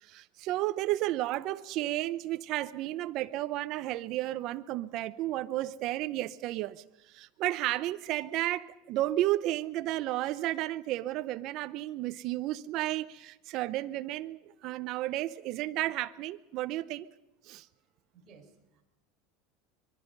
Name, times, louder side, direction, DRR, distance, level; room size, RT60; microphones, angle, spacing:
voice 1, 0.0-6.8 7.1-17.1 17.4-17.7, right 15 dB, 40° right, 0.7 m, -32 dB
voice 2, 17.7-18.8, right 5 dB, 20° right, 4.8 m, -59 dB
25.5 x 22.0 x 5.4 m
supercardioid pair, 180°, 0 cm